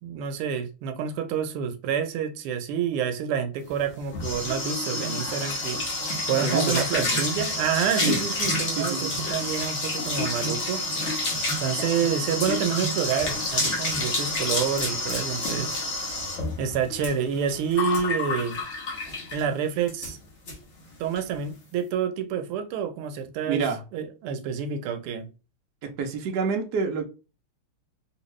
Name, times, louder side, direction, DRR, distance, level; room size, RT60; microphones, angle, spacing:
voice 1, 0.0-5.8 6.3-10.8 11.6-15.7 16.6-18.6 19.3-20.2 21.0-23.6 23.9-25.3, right 7 dB, 90° right, 1.5 m, -28 dB
sound 1, 3.7-19.5 19.9-20.1 20.5-20.6 20.8-21.2, left 2 dB, 45° left, 1.0 m, -29 dB
voice 2, 6.4-7.2 8.0-8.2 8.7-9.2 23.5-23.8 25.8-27.0, right 5 dB, 65° right, 1.0 m, -28 dB
3.5 x 2.8 x 3.0 m
omnidirectional pair, 2.4 m